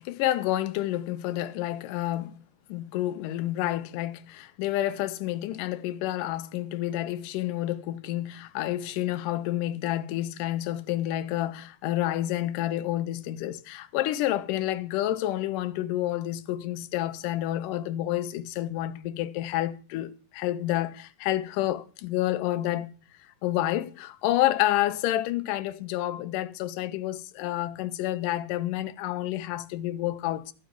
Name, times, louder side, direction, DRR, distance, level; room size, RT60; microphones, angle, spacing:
voice 1, 0.0-2.4 2.7-22.9 23.4-30.5, left 14 dB, 85° left, 2.3 m, -29 dB
13.5 x 7.6 x 6.0 m
omnidirectional pair, 3.7 m